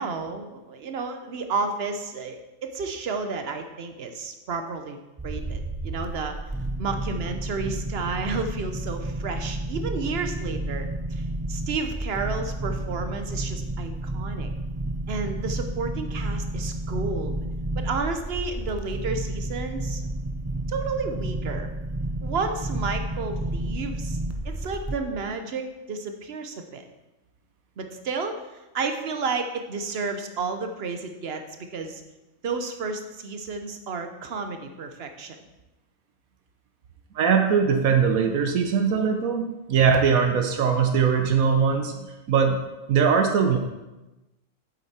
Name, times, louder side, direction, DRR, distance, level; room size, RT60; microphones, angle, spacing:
voice 1, 0.0-5.0 5.2-6.4 6.8-11.2 11.5-14.5 15.1-17.4 17.8-20.0 20.7-21.7 22.2-24.2 24.4-26.8 27.8-32.0 32.4-35.4, right 4 dB, 50° right, 6 dB, 1.0 m, -31 dB
sound 1, 5.2-25.0, right 1 dB, 25° right, 0.3 m, -31 dB
voice 2, 37.1-42.6 42.9-43.6, right 6 dB, 90° right, 5 dB, 1.3 m, -21 dB
8.2 x 7.9 x 4.3 m, 1.0 s
omnidirectional pair, 1.4 m